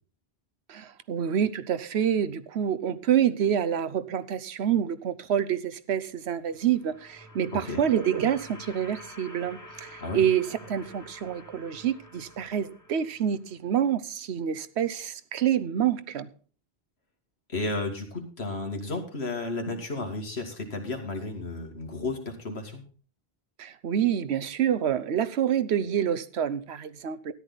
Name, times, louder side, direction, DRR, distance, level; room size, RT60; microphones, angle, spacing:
voice 1, 0.7-16.3 23.6-27.3, right 9 dB, 90° right, 1.1 m, -27 dB
sound 1, 6.4-13.5, left 1 dB, 15° left, 1.6 m, -48 dB
voice 2, 7.5-7.8 10.0-10.2 17.5-22.8, left 2 dB, 85° left, 2.5 m, -33 dB
13.5 x 10.5 x 4.0 m
omnidirectional pair, 1.1 m